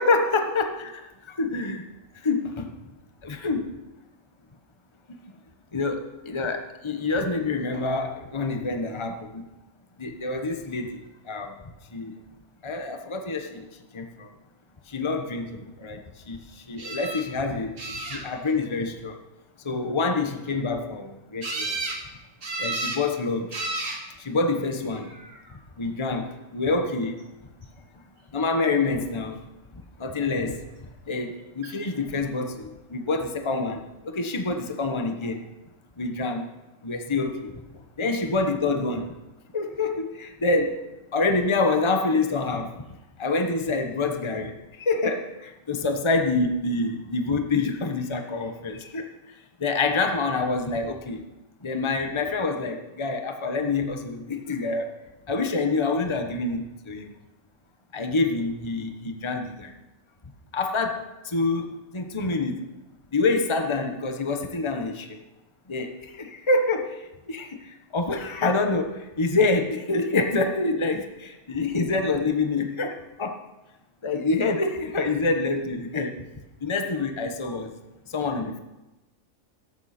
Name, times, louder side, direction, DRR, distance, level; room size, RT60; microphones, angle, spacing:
voice 1, 0.0-1.9 2.2-2.8 3.2-3.8 5.1-5.2 5.7-9.4 10.0-11.5 11.9-12.2 12.6-13.7 13.9-14.3 14.9-19.2 19.6-21.8 22.6-23.5 24.2-25.1 25.8-27.2 28.3-29.4 29.7-30.6 31.1-35.5 36.0-36.5 36.8-37.5 38.0-39.1 39.5-42.8 43.2-49.1 49.6-51.2 51.6-54.9 55.3-57.1 57.9-59.7 60.5-62.7 63.1-65.2 65.7-73.4 74.0-76.3 76.6-77.8 78.1-78.6, left 3 dB, 20° left, 5 dB, 1.1 m, -27 dB
sound 1, 16.8-17.2 17.8-18.5 21.4-22.0 22.4-23.0 23.5-24.0 24.9-25.4 31.6-31.7 32.1-32.2, right 2 dB, 65° right, 2.6 m, -32 dB
17.0 x 14.0 x 4.4 m, 1.0 s
omnidirectional pair, 1.4 m